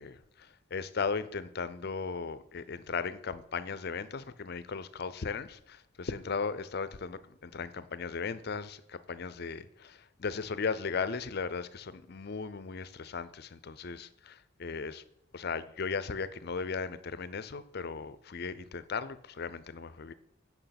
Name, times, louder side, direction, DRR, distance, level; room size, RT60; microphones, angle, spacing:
voice 1, 0.0-15.0 15.3-20.1, left 5 dB, 50° left, 0.5 m, -37 dB
9.2 x 5.9 x 5.8 m
head